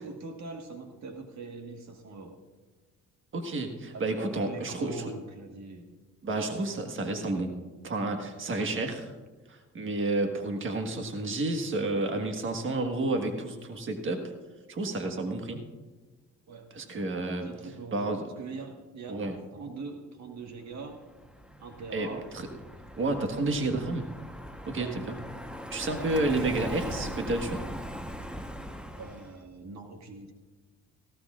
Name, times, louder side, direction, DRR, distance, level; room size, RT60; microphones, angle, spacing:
voice 1, 0.0-2.4 3.9-6.0 10.0-10.2 15.1-15.3 16.5-16.9 17.2-21.0 21.6-22.3 23.5-23.9 24.7-25.0 26.0-26.7 27.0-27.4 28.9-30.3, right 3 dB, 65° right, 3 dB, 1.6 m, -43 dB
voice 2, 3.3-5.0 6.2-7.5 7.8-9.1 9.5-14.3 14.7-15.6 16.7-17.5 17.9-18.3 19.1-19.3 21.9-22.5 23.0-24.1 24.7-25.2 25.7-27.6, right 2 dB, 40° right, 4 dB, 1.5 m, -30 dB
Car passing by, 20.8-29.4, equal, 5° right, 1.0 m, -40 dB
17.5 x 16.0 x 2.5 m, 1.3 s
cardioid pair, 90°, 30 cm